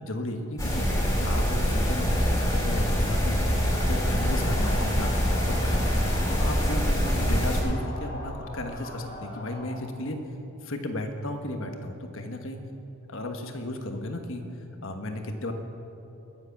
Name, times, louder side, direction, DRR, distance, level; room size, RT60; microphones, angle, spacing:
voice 1, 0.0-3.6 3.9-5.1 5.5-5.8 6.4-10.2 10.6-12.6 13.1-14.4 14.8-15.5, left 1 dB, 60° left, 5 dB, 1.3 m, -34 dB
sound 1, 0.6-7.6, equal, 15° left, 2.5 m, -24 dB
sound 2, 3.7-9.9, left 1 dB, 45° left, 1.9 m, -41 dB
21.0 x 7.8 x 5.9 m, 2.8 s
head